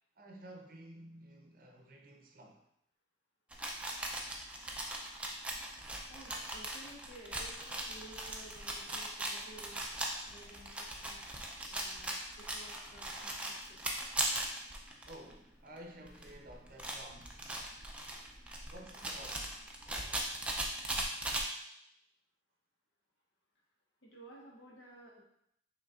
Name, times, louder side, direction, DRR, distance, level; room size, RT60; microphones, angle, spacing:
voice 1, 0.2-2.6 15.1-17.5 18.7-20.4, right 1 dB, 50° right, 2 dB, 0.6 m, -53 dB
sound 1, 3.5-15.3 15.8-15.9 16.1-21.4, right 1 dB, 5° right, 0.4 m, -39 dB
voice 2, 6.1-9.8 10.2-11.2 11.7-13.8 24.0-25.2, right 1 dB, 80° left, -4 dB, 1.2 m, -54 dB
5.2 x 3.2 x 2.4 m, 0.76 s
head